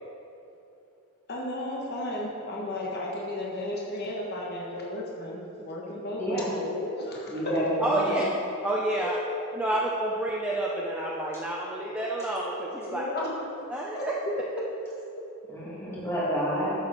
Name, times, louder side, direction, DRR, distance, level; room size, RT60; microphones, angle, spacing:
voice 1, 1.3-7.6 12.9-13.3 13.9-14.3 15.1-15.2, left 1 dB, 50° left, -3 dB, 1.4 m, -34 dB
voice 2, 6.2-6.5 7.3-8.2 15.5-16.7, equal, 10° left, -8 dB, 2.5 m, -29 dB
voice 3, 7.8-8.2 8.6-9.2 9.5-13.0 13.7-14.1, right 1 dB, 5° right, -4 dB, 0.7 m, -29 dB
11.0 x 7.8 x 4.2 m, 2.8 s
head